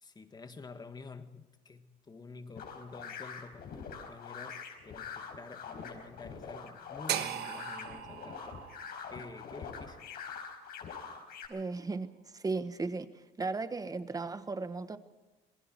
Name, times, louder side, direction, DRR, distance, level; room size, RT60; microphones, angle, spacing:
voice 1, 0.0-8.6 9.1-10.1, left 4 dB, 25° left, 1.8 m, -49 dB
sound 1, 2.6-11.5, left 6 dB, 65° left, 4.6 m, -44 dB
sound 2, 7.1-11.2, right 11 dB, 70° right, 1.3 m, -40 dB
voice 2, 11.5-13.1 13.4-15.0, right 3 dB, 20° right, 1.3 m, -36 dB
27.5 x 20.5 x 4.6 m
cardioid pair, 110°, 17 cm